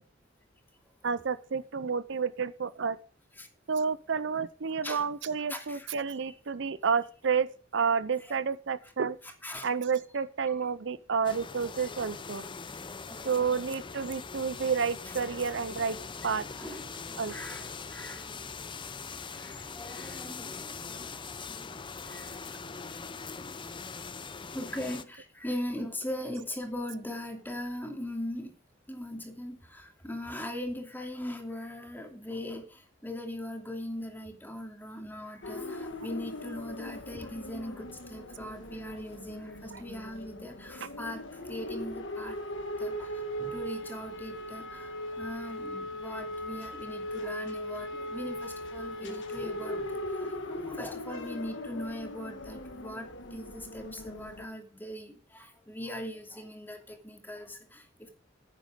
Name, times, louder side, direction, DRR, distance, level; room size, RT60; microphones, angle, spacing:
voice 1, 1.0-3.0 3.7-7.5 7.7-9.2 9.6-12.5 13.2-16.0 16.2-16.4 17.2-17.4, right 6 dB, 65° right, 15 dB, 0.6 m, -30 dB
voice 2, 5.5-5.9 8.2-8.4 8.8-8.9 9.2-9.7 10.4-10.7 11.6-11.9 13.1-13.5 15.0-15.3 16.6-18.4 18.8-18.9 19.3-21.8 22.0-22.3 24.5-28.5 28.9-42.4 42.8-58.1, left 1 dB, 10° left, 2 dB, 2.7 m, -40 dB
sound 1, 11.2-25.0, left 5 dB, 25° left, 0.6 m, -42 dB
sound 2, 35.4-54.5, left 1 dB, 70° left, 1.8 m, -39 dB
10.0 x 9.1 x 5.1 m, 0.38 s
head